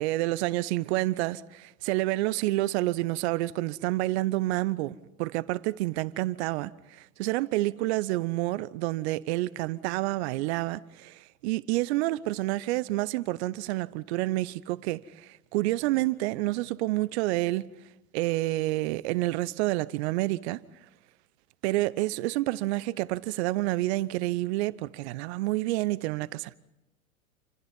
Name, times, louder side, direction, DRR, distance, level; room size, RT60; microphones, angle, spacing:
voice 1, 0.0-17.7 18.1-20.6 21.6-26.5, right 18 dB, 50° right, 1.0 m, -29 dB
28.5 x 27.0 x 5.5 m
hypercardioid pair, 100°, 42 cm